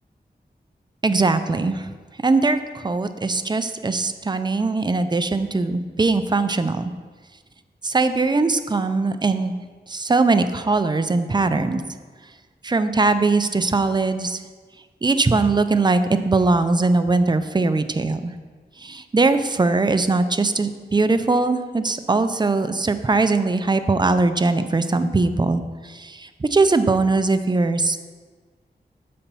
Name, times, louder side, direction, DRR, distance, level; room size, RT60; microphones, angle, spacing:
voice 1, 1.0-1.9 2.2-6.9 7.8-9.6 9.9-11.8 12.6-14.4 15.0-18.3 18.8-28.0, right 3 dB, 25° right, 10 dB, 0.4 m, -21 dB
6.9 x 4.3 x 5.4 m, 1.5 s
wide cardioid pair, 70°, 18 cm